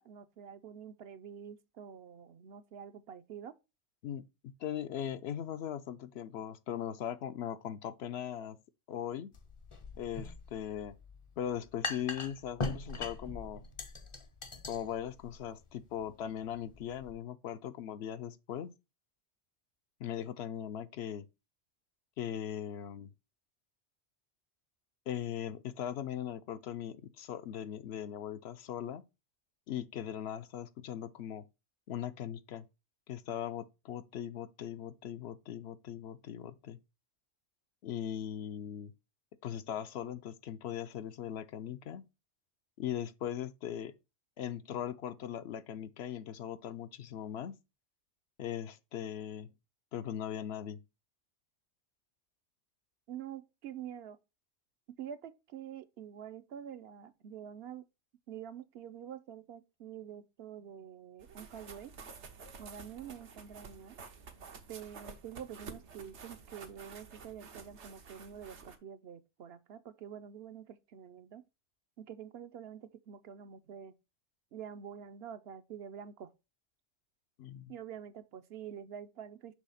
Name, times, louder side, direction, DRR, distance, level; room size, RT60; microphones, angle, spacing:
voice 1, 0.0-3.5 53.1-54.2 55.0-57.8 58.3-61.9 62.6-64.0 64.7-71.4 72.0-73.9 74.5-76.3 77.7-79.5, right 9 dB, 65° right, 0.8 m, -47 dB
voice 2, 4.0-8.6 8.9-9.3 10.0-10.9 11.4-13.6 14.7-18.7 20.0-21.2 22.2-23.1 25.1-29.0 29.7-31.5 31.9-32.7 33.1-36.8 37.8-38.9 39.4-42.0 42.8-43.9 44.4-47.6 48.4-49.5 49.9-50.8 77.4-77.7, left 10 dB, 70° left, 0.8 m, -39 dB
sound 1, 9.3-17.1, left 3 dB, 35° left, 0.6 m, -42 dB
sound 2, 61.2-68.8, right 5 dB, 85° right, 1.2 m, -51 dB
6.2 x 3.2 x 5.5 m
omnidirectional pair, 1.2 m